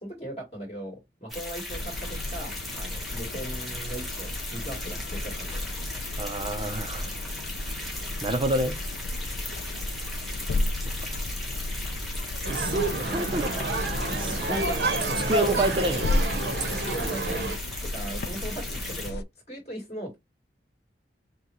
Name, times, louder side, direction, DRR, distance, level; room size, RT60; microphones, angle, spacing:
voice 1, 0.0-5.7 14.3-14.8 15.1-15.2 16.9-17.5 17.8-20.2, right 1 dB, 35° left, 2.2 m, -38 dB
sound 1, 1.3-19.1, left 1 dB, ahead, 1.1 m, -37 dB
sound 2, 1.7-19.2, left 2 dB, 60° left, 0.4 m, -34 dB
voice 2, 6.2-7.1 7.7-7.9 8.2-8.8 10.8-11.2 12.5-13.8 14.1-14.8 15.3-16.2, right 2 dB, 30° right, 0.6 m, -29 dB
sound 3, 12.4-17.6, right 2 dB, 75° right, 0.9 m, -29 dB
5.7 x 2.3 x 3.0 m
head